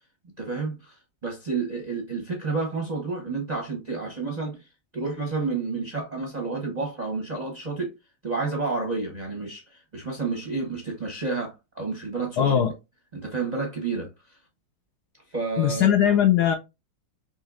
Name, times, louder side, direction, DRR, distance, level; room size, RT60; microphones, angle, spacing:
voice 1, 0.4-4.7 4.9-7.9 8.2-12.7 13.1-14.4 15.3-15.9, right 4 dB, 40° right, 0.6 m, -30 dB
voice 2, 12.4-12.7 15.6-16.5, left 10 dB, 75° left, 0.9 m, -20 dB
5.3 x 3.0 x 2.4 m
omnidirectional pair, 2.1 m